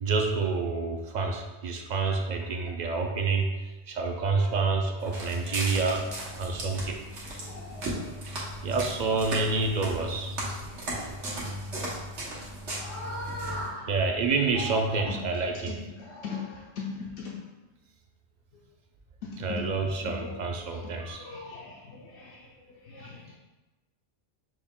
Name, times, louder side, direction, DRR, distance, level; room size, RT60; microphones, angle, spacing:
voice 1, 0.0-3.5 3.9-6.1 6.4-7.0 8.6-10.4 13.9-15.8 19.4-21.3 23.0-23.1, right 4 dB, 55° right, 3 dB, 0.5 m, -28 dB
Walk footsteps, 5.0-13.7, right 1 dB, 85° right, 1.4 m, -36 dB
voice 2, 7.4-8.0 12.8-13.9 14.6-14.8 15.1-15.2 16.0-17.3 19.5-19.6 20.0-20.3 20.7-22.4 22.9-23.4, left 3 dB, 80° left, -3 dB, 0.9 m, -39 dB
6.1 x 2.3 x 3.6 m, 1.1 s
omnidirectional pair, 1.2 m